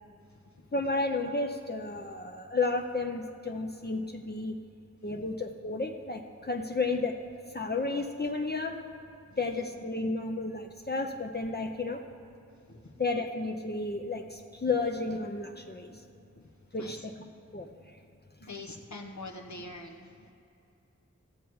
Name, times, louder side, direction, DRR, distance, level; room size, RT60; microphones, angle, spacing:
voice 1, 0.7-4.6 5.0-7.2 7.5-8.9 9.4-12.0 13.0-16.0 16.7-17.7, left 3 dB, 35° left, 3 dB, 0.6 m, -32 dB
voice 2, 9.3-9.6 12.7-12.8 16.4-16.5 16.8-17.1 18.4-20.1, left 2 dB, 75° left, 1 dB, 1.2 m, -44 dB
15.5 x 7.0 x 4.7 m, 2.7 s
wide cardioid pair, 45°, 29 cm